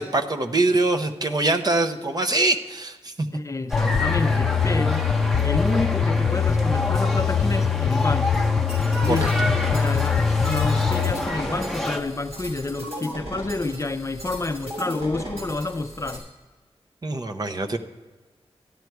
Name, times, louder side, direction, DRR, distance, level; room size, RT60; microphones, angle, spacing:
voice 1, 0.0-3.3 9.1-9.3 17.0-17.8, right 2 dB, 40° right, 5 dB, 0.8 m, -23 dB
voice 2, 3.3-5.1 5.4-8.3 9.0-16.2, left 2 dB, 30° left, 8 dB, 0.5 m, -29 dB
sound 1, 3.7-11.1, left 6 dB, 80° left, 0.6 m, -23 dB
sound 2, 3.7-12.0, left 1 dB, ahead, 1.0 m, -29 dB
sound 3, 8.7-16.2, equal, 75° right, 4.5 m, -37 dB
13.0 x 10.5 x 4.6 m, 1.3 s
wide cardioid pair, 100°, 11 cm